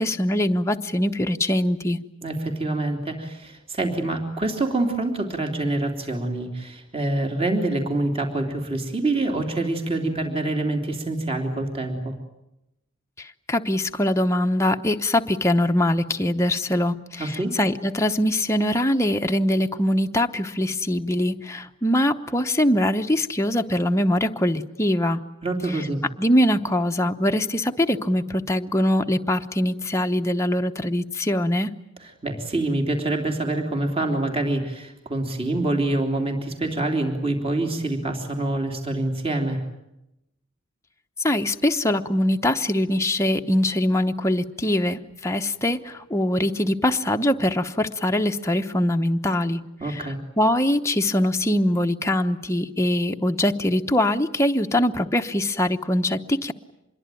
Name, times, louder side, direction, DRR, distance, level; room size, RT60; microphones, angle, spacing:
voice 1, 0.0-2.0 13.2-25.2 25.7-25.8 26.2-31.7 41.2-50.1 50.4-56.5, left 1 dB, 15° left, 4 dB, 1.0 m, -23 dB
voice 2, 2.2-12.1 17.2-17.5 25.4-26.0 32.2-39.6 49.8-50.2, right 2 dB, 30° right, 4 dB, 3.2 m, -26 dB
26.0 x 22.0 x 9.2 m, 0.88 s
head